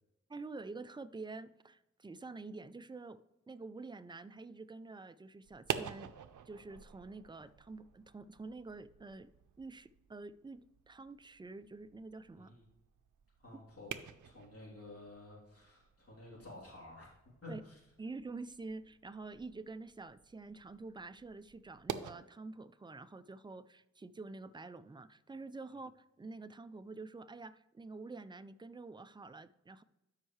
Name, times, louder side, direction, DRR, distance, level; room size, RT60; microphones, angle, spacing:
voice 1, 0.3-6.1 6.4-9.3 9.6-12.5 13.5-13.6 17.5-17.6 18.0-25.9 26.2-29.8, right 3 dB, 15° right, 0.3 m, -48 dB
sound 1, 5.4-22.1, right 8 dB, 85° right, 0.5 m, -48 dB
voice 2, 12.3-12.6 13.4-13.9 14.2-17.1 17.4-17.8, left 2 dB, 50° left, 3.2 m, -52 dB
12.0 x 5.5 x 3.2 m
wide cardioid pair, 75°, 30 cm